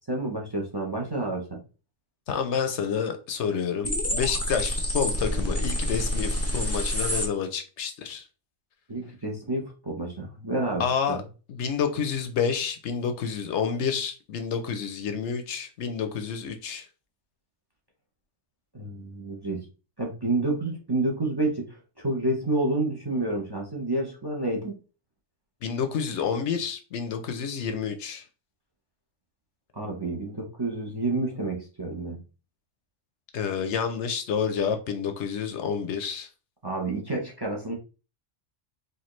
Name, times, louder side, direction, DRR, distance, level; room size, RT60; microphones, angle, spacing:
voice 1, 0.1-1.6 8.9-11.2 18.7-19.7 20.0-24.8 29.7-32.2 36.6-37.7, right 2 dB, 25° right, 0.7 m, -29 dB
voice 2, 2.3-8.3 10.8-11.2 11.5-16.9 25.6-28.3 33.3-36.3, left 6 dB, 70° left, 0.9 m, -29 dB
sound 1, 3.8-7.3, equal, 15° left, 0.5 m, -27 dB
4.4 x 2.6 x 3.0 m
omnidirectional pair, 1.3 m